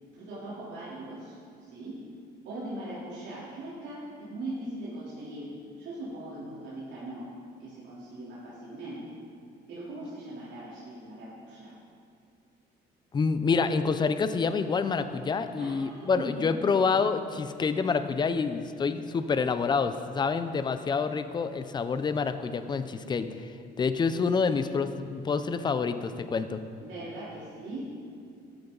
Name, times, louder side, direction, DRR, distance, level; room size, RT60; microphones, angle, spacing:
voice 1, 0.1-2.0 2.4-5.5 5.8-7.3 7.6-9.2 9.7-11.7 15.5-16.5 26.8-27.9, right 1 dB, 80° right, -9 dB, 3.5 m, -40 dB
voice 2, 13.1-23.5 23.8-26.6, left 5 dB, 25° left, 10 dB, 0.6 m, -27 dB
13.0 x 13.0 x 4.0 m, 2.4 s
cardioid pair, 140°, 19 cm